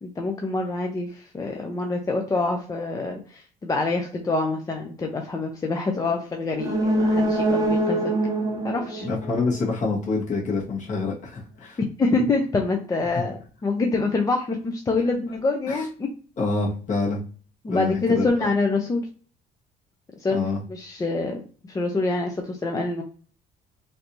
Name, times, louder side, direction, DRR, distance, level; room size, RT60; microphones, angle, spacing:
voice 1, 0.0-8.1 8.6-9.1 12.0-16.1 17.6-19.0 20.2-21.4 21.7-23.0, left 3 dB, 20° left, 2 dB, 0.5 m, -26 dB
sound 1, 6.5-10.2 10.6-10.7, right 1 dB, 20° right, 0.7 m, -25 dB
voice 2, 9.0-11.8 13.1-13.2 15.7-15.9 16.4-17.2 17.7-18.5 20.3-20.6, left 3 dB, 45° left, -4 dB, 1.6 m, -27 dB
3.2 x 2.7 x 2.9 m, 0.40 s
cardioid pair, 110°, 17 cm